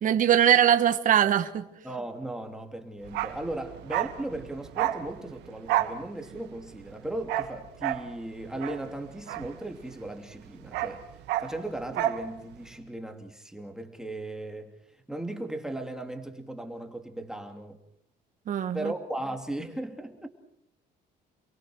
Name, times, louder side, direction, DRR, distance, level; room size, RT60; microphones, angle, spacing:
voice 1, 0.0-1.6 18.5-18.9, right 10 dB, 50° right, 8 dB, 1.5 m, -21 dB
voice 2, 1.8-11.0 11.4-14.7 15.1-17.8 18.7-20.3, right 1 dB, 5° right, 4 dB, 2.9 m, -37 dB
Bark, 3.0-10.1 10.4-12.3 12.5-12.7, right 13 dB, 90° right, 1.9 m, -31 dB
29.0 x 22.5 x 6.3 m, 0.75 s
cardioid pair, 110°, 17 cm